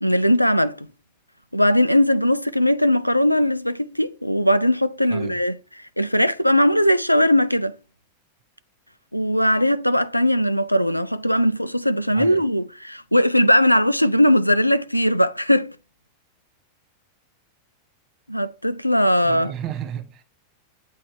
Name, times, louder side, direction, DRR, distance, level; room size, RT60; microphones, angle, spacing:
voice 1, 0.0-0.9 1.5-5.6 6.0-7.7 9.1-15.7 18.3-19.5, equal, 90° left, 0.4 m, -19 dB
voice 2, 19.2-20.2, right 9 dB, 35° right, 0.9 m, -33 dB
8.1 x 3.2 x 4.7 m
figure-of-eight pair, 90°, 0 cm